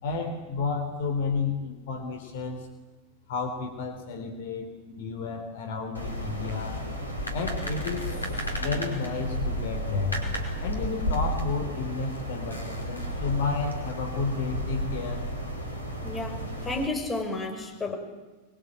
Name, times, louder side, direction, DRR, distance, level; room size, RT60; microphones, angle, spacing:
voice 1, 0.0-2.7 3.3-6.8 7.3-10.2 10.6-15.3, left 4 dB, 55° left, 5 dB, 3.6 m, -32 dB
sound 1, 5.9-16.9, equal, 80° left, 5.0 m, -32 dB
voice 2, 16.0-17.9, left 2 dB, 15° left, 2 dB, 6.1 m, -32 dB
24.5 x 23.0 x 9.0 m, 1.2 s
figure-of-eight pair, 90°, 0 cm